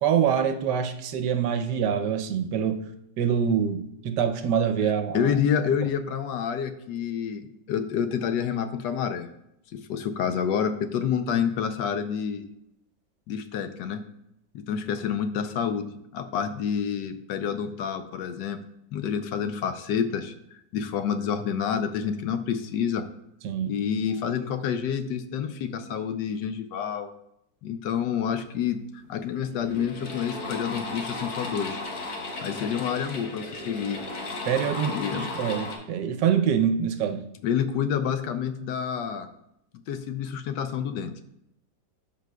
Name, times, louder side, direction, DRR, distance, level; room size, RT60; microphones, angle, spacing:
voice 1, 0.0-2.9 3.2-5.3 23.4-23.7 34.5-37.2, right 8 dB, 70° right, 8 dB, 1.2 m, -25 dB
voice 2, 5.1-9.3 9.7-12.4 13.3-14.0 14.5-18.6 18.9-20.3 20.7-23.0 23.7-27.1 27.6-31.8 32.4-34.0 34.9-35.3 37.4-39.3 39.9-41.2, left 7 dB, 75° left, 8 dB, 1.2 m, -28 dB
sound 1, 29.0-29.1 29.5-35.8, left 2 dB, 55° left, 1.5 m, -35 dB
13.0 x 5.2 x 2.2 m, 0.79 s
omnidirectional pair, 2.0 m